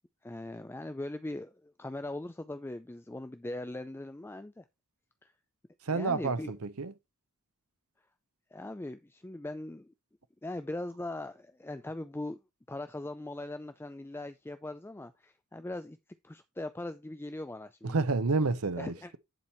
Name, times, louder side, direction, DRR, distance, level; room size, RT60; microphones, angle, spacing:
voice 1, 0.2-4.6 5.2-5.3 5.9-6.5 8.5-9.9 10.4-12.4 12.7-16.0 16.2-18.0 18.8-19.2, left 1 dB, 10° left, 0.4 m, -40 dB
voice 2, 5.9-6.9 17.8-19.2, right 3 dB, 85° right, 0.8 m, -29 dB
10.5 x 4.5 x 4.4 m
head